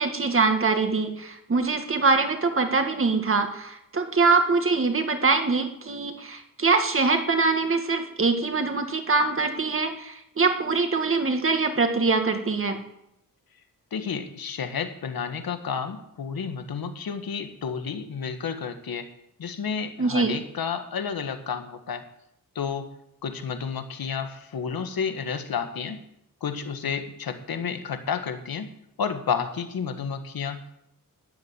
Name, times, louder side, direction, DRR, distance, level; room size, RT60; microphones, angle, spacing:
voice 1, 0.0-12.8 20.0-20.3, right 4 dB, 35° right, 6 dB, 2.0 m, -23 dB
voice 2, 13.9-19.1 19.4-22.0 22.5-22.9 23.2-26.0 26.4-28.7 29.0-30.9, left 6 dB, 85° left, 8 dB, 1.7 m, -31 dB
13.0 x 10.5 x 9.7 m, 0.78 s
wide cardioid pair, 160°, 35 cm